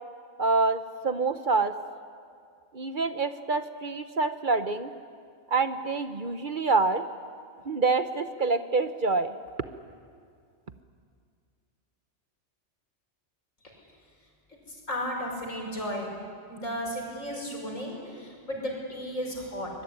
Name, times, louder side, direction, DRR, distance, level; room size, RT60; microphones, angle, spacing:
voice 1, 0.4-1.7 2.7-4.9 5.5-7.0 7.7-9.3, right 3 dB, 45° right, 10 dB, 1.0 m, -26 dB
voice 2, 14.9-16.1 16.5-19.7, equal, 85° left, 0 dB, 6.4 m, -34 dB
24.5 x 21.0 x 9.7 m, 2.2 s
omnidirectional pair, 1.3 m